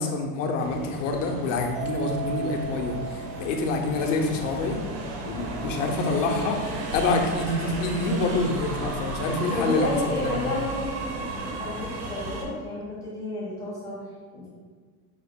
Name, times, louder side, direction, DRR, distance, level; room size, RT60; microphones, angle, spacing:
voice 1, 0.0-4.8 5.2-10.5, left 3 dB, 55° left, 3 dB, 0.6 m, -27 dB
sound 1, 0.6-12.4, right 2 dB, 80° right, 0.9 m, -34 dB
Mallet percussion, 1.7-4.2, right 6 dB, 65° right, 0.6 m, -36 dB
voice 2, 9.5-14.0 14.3-14.5, left 1 dB, 10° left, -7 dB, 0.4 m, -31 dB
5.3 x 2.1 x 3.5 m, 1.5 s
supercardioid pair, 165°, 48 cm